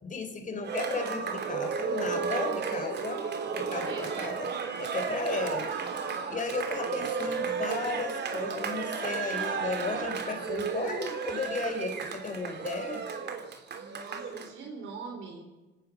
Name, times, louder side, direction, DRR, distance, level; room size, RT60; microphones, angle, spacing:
voice 1, 0.0-3.3 3.5-5.7 6.3-13.1, left 3 dB, 40° left, 7 dB, 4.2 m, -35 dB
Cheering, 0.6-14.5, right 5 dB, 60° right, 3.2 m, -33 dB
voice 2, 3.6-4.4 13.8-15.6, right 4 dB, 85° right, 2 dB, 3.9 m, -43 dB
26.0 x 18.0 x 6.3 m, 1.1 s
cardioid pair, 90°, 20 cm